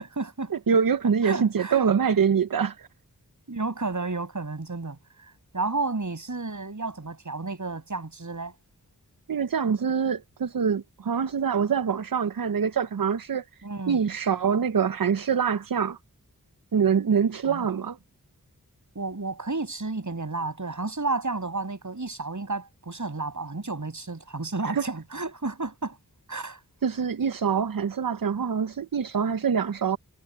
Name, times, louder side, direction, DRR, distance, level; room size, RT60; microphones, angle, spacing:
voice 1, 0.0-0.5 1.2-1.8 3.5-5.0 5.5-8.5 13.6-14.0 17.5-17.7 18.9-26.0 26.3-26.6, right 3 dB, 55° right, 7.3 m, -31 dB
voice 2, 0.5-2.9 9.3-13.4 13.9-16.0 16.7-18.0 24.7-24.8 26.8-30.0, right 6 dB, 70° right, 0.8 m, -25 dB
wide cardioid pair, 55°, 35 cm